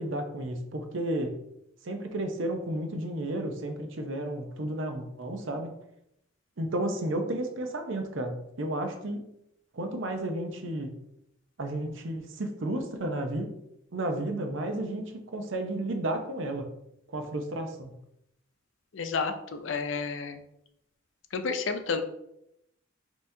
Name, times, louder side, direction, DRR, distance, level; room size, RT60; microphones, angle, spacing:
voice 1, 0.0-1.4 1.8-5.7 6.6-9.2 9.7-10.9 11.6-13.5 13.9-16.7 17.1-17.9, right 1 dB, 80° right, 5 dB, 0.7 m, -32 dB
voice 2, 18.9-20.4 21.3-22.0, left 4 dB, 75° left, 7 dB, 0.5 m, -31 dB
5.6 x 2.9 x 2.7 m, 0.79 s
head